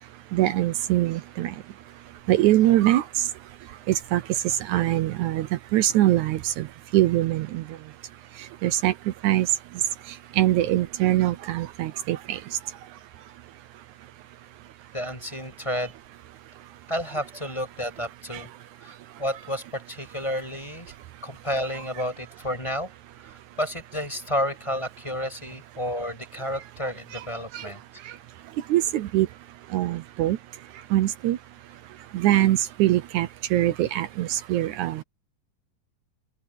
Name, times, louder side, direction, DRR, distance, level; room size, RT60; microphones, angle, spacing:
voice 1, 0.3-1.6 2.3-3.3 3.9-5.5 5.7-6.7 6.9-7.6 8.6-8.9 9.2-9.5 10.3-12.4 18.3-18.4 27.1-27.3 27.5-27.7 28.7-29.3 29.7-30.4 30.9-31.4 32.1-35.0, right 14 dB, 75° right, 2.1 m, -23 dB
voice 2, 14.9-15.9 16.9-18.5 18.8-20.9 21.2-22.9 23.2-27.8, equal, 10° left, 6.5 m, -31 dB
open air
omnidirectional pair, 3.6 m